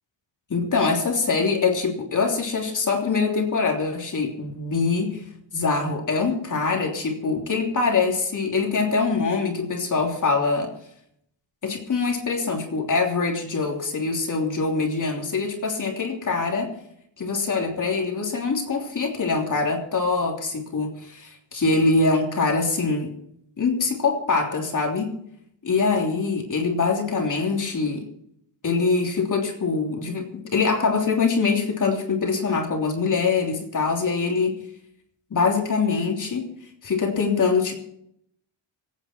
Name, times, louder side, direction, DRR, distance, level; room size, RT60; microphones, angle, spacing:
voice 1, 0.5-5.2 5.5-10.7 11.6-16.7 17.2-23.1 23.6-25.1 25.6-28.0 28.6-34.5 35.3-36.5 36.8-37.7, left 4 dB, 40° left, 0 dB, 3.2 m, -24 dB
25.5 x 9.3 x 4.5 m, 0.72 s
wide cardioid pair, 170°, 46 cm